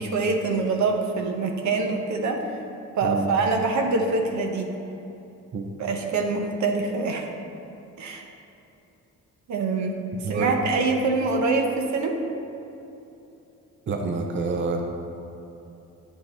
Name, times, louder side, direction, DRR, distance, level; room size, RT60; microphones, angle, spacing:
voice 1, 0.0-2.6 3.0-4.7 5.8-7.3 8.0-8.3 9.5-10.0 10.3-12.2, right 3 dB, 70° right, 3 dB, 0.9 m, -25 dB
voice 2, 10.2-10.5 13.9-14.8, right 4 dB, 40° right, 3 dB, 0.7 m, -27 dB
8.8 x 5.6 x 4.3 m, 2.9 s
cardioid pair, 90°, 30 cm